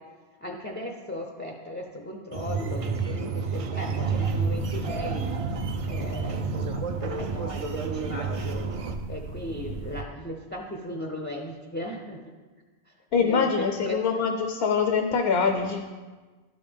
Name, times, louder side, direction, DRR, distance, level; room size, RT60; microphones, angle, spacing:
voice 1, 0.4-5.2 5.9-8.6 9.1-12.2 13.1-14.0, left 1 dB, 15° left, 1 dB, 0.4 m, -37 dB
sound 1, 2.3-8.9, right 4 dB, 50° right, 0.4 m, -30 dB
sound 2, 3.9-10.0, right 4 dB, 75° right, 0.9 m, -35 dB
voice 2, 13.1-15.8, left 5 dB, 70° left, 5 dB, 0.8 m, -24 dB
11.5 x 5.1 x 3.5 m, 1.3 s
omnidirectional pair, 1.1 m